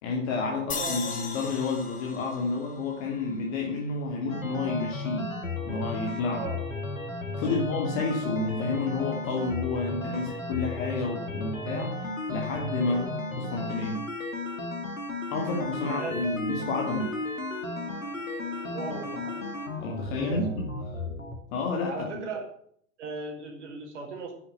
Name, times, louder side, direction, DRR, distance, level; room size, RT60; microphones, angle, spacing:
voice 1, 0.0-5.3 5.7-6.5 7.4-13.1 13.4-14.0 15.3-17.1 19.8-20.6 21.5-22.2, left 3 dB, 50° left, 0 dB, 3.0 m, -30 dB
sound 1, 0.7-4.0, left 4 dB, 20° left, 4.1 m, -38 dB
voice 2, 0.7-1.3 6.3-6.6 7.4-7.6 12.8-13.1 15.8-16.2 18.7-19.4 20.2-20.4 21.9-22.5 23.0-24.3, right 4 dB, 60° right, 3 dB, 5.0 m, -37 dB
sound 2, 4.3-21.4, left 2 dB, 85° left, 2.4 m, -34 dB
Wind instrument woodwind instrument, 16.9-21.0, right 3 dB, 10° right, 6.8 m, -47 dB
10.5 x 10.5 x 6.0 m, 0.65 s
figure-of-eight pair, 85°, 39 cm